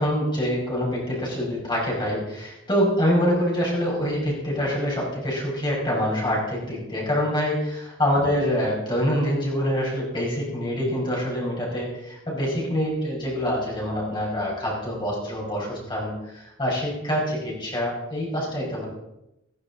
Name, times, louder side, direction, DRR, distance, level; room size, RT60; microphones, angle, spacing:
voice 1, 0.0-18.9, equal, 25° left, -4 dB, 5.2 m, -25 dB
15.5 x 14.5 x 4.1 m, 0.90 s
head